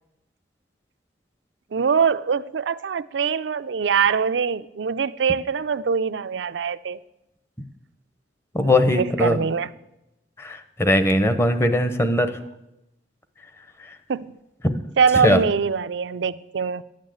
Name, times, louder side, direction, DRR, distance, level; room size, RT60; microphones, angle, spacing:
voice 1, 1.7-7.0 8.6-9.7 14.1-14.3 15.0-16.8, right 6 dB, 80° right, 0.4 m, -23 dB
voice 2, 8.5-9.4 10.4-12.3 14.6-14.8 15.2-15.4, left 1 dB, 15° left, 0.8 m, -20 dB
11.0 x 9.0 x 7.7 m
head